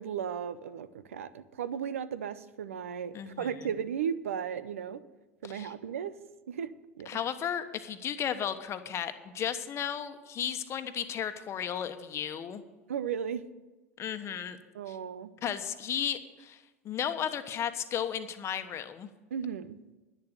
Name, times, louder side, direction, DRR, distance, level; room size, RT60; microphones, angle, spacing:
voice 1, 0.0-5.0 5.4-6.1 6.5-6.7 7.0-7.1 12.9-13.4 14.7-15.3 19.3-19.8, right 8 dB, 80° right, 15 dB, 0.7 m, -35 dB
voice 2, 3.1-3.5 5.4-5.7 7.1-12.6 14.0-14.6 14.9-15.0 15.4-19.1, left 9 dB, 40° left, 9 dB, 1.2 m, -34 dB
10.5 x 10.5 x 6.8 m, 1.2 s
hypercardioid pair, 80°, 7 cm